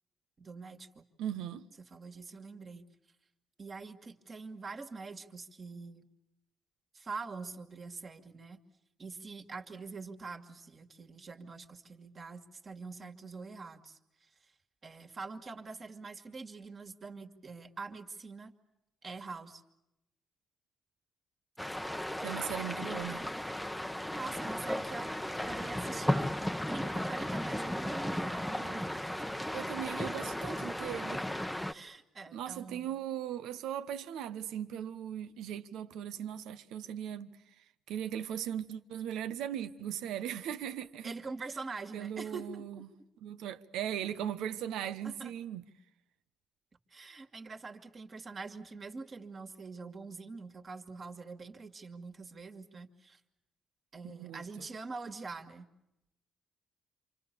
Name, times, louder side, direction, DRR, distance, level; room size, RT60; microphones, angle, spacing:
voice 1, 0.4-1.1 1.8-2.9 3.6-6.1 6.9-8.6 9.0-14.0 14.8-18.5 19.0-19.6 24.1-26.3 26.7-28.9 29.2-29.5 31.7-32.9 41.0-42.6 45.0-45.3 46.9-53.2 53.9-55.7, right 4 dB, 40° right, 2.3 m, -44 dB
voice 2, 1.2-1.7 22.2-23.3 29.5-31.3 32.3-37.4 37.9-41.1 41.9-42.9 43.2-45.6 54.0-54.7, right 10 dB, 90° right, 1.2 m, -38 dB
sound 1, 21.6-31.7, left 1 dB, 5° left, 1.0 m, -35 dB
28.0 x 25.5 x 7.0 m
cardioid pair, 90°, 0 cm